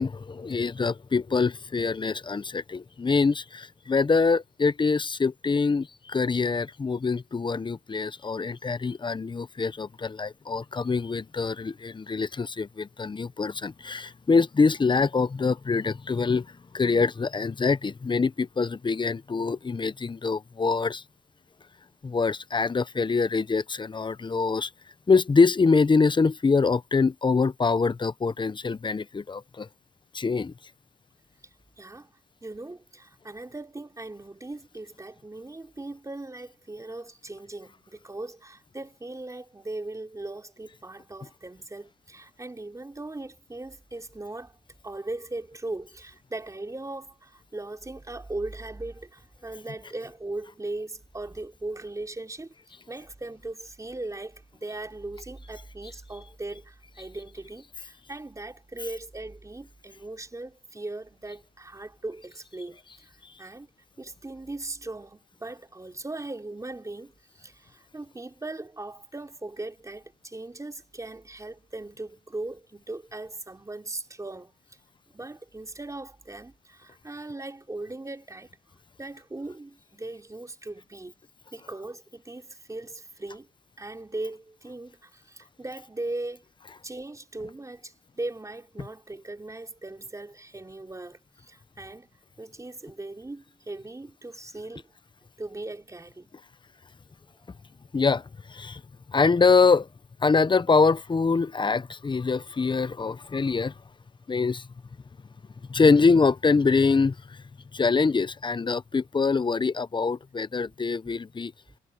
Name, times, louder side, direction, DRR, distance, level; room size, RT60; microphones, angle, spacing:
voice 1, 0.0-16.5 16.7-21.0 22.0-24.7 25.1-29.7 30.1-30.5 97.9-98.8 99.1-99.9 100.2-103.7 104.3-104.7 105.7-107.4 107.7-111.5, left 4 dB, 25° left, 0.8 m, -24 dB
voice 2, 31.8-32.1 32.4-44.6 44.8-52.5 52.9-63.7 64.0-74.6 75.1-78.6 79.0-81.1 81.5-83.5 83.8-86.4 86.8-92.1 92.4-94.9 95.4-96.3, right 2 dB, 15° right, 3.7 m, -39 dB
cardioid pair, 90°, 20 cm